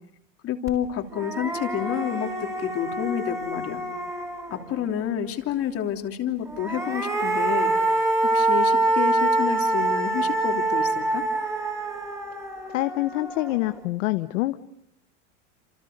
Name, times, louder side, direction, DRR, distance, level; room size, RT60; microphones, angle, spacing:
voice 1, 0.4-3.8 4.5-7.7 8.2-11.2, left 9 dB, 35° left, 5 dB, 3.1 m, -29 dB
sound 1, 0.7-0.8 1.1-4.8 6.4-13.7, right 2 dB, 5° right, 4.2 m, -25 dB
voice 2, 12.7-14.6, left 18 dB, 75° left, 11 dB, 1.1 m, -26 dB
28.5 x 28.0 x 6.7 m, 0.75 s
supercardioid pair, 140°, 38 cm